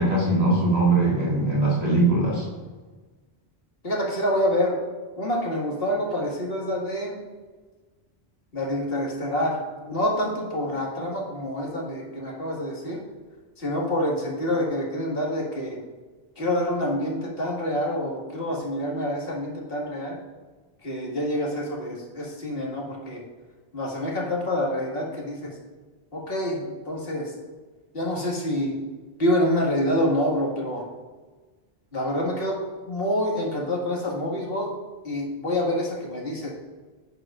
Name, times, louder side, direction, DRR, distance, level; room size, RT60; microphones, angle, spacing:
voice 1, 0.0-2.5, right 2 dB, 40° right, -5 dB, 2.3 m, -21 dB
voice 2, 3.8-4.8 5.2-7.2 8.5-13.0 13.6-15.8 16.4-20.2 20.8-23.2 23.7-25.5 26.1-27.3 27.9-28.7 29.2-30.8 31.9-32.6 32.9-34.7 35.0-36.5, left 1 dB, 65° left, -3 dB, 2.2 m, -27 dB
11.0 x 9.5 x 2.5 m, 1.3 s
omnidirectional pair, 1.1 m